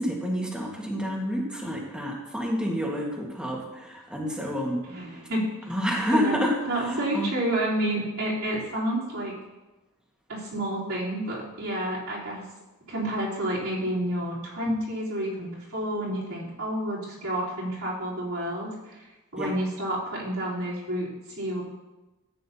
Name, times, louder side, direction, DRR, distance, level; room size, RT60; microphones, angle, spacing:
voice 1, 0.0-4.8 5.7-7.3 19.4-19.5, equal, 5° right, -2 dB, 1.6 m, -28 dB
voice 2, 4.8-5.5 6.1-6.4 6.7-9.3 10.3-12.4 12.9-19.0 19.3-21.6, right 1 dB, 75° right, -7 dB, 3.6 m, -30 dB
13.5 x 9.1 x 2.8 m, 1.1 s
head